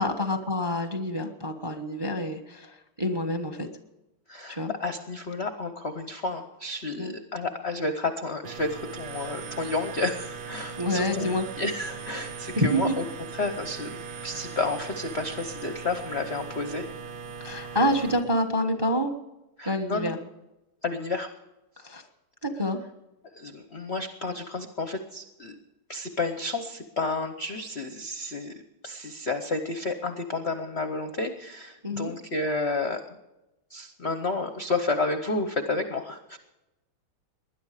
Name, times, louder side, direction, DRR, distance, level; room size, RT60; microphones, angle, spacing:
voice 1, 0.0-3.7 4.5-4.7 7.0-7.1 10.8-11.5 12.6-13.0 17.4-19.1 19.6-20.2 21.8-22.0 22.4-22.8 31.8-32.1, left 1 dB, 20° right, 6 dB, 0.8 m, -27 dB
voice 2, 4.3-11.3 11.6-13.0 13.3-16.9 19.6-20.1 20.8-21.3 23.3-25.6 25.9-28.5 28.8-33.0 33.7-36.4, left 3 dB, 50° left, 7 dB, 0.7 m, -31 dB
sound 1, 8.5-18.2, right 6 dB, 65° right, 1.9 m, -39 dB
20.5 x 11.0 x 4.9 m, 0.97 s
omnidirectional pair, 2.4 m